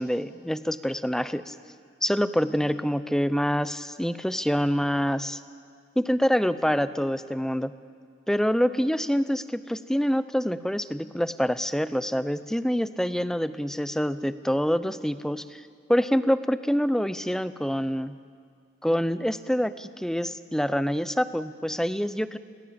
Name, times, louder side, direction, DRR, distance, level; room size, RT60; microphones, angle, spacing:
voice 1, 0.0-1.5 2.0-5.4 6.0-7.7 8.3-15.6 15.9-18.2 18.8-22.4, equal, 5° left, 13 dB, 0.7 m, -26 dB
29.5 x 23.0 x 8.7 m, 2.1 s
head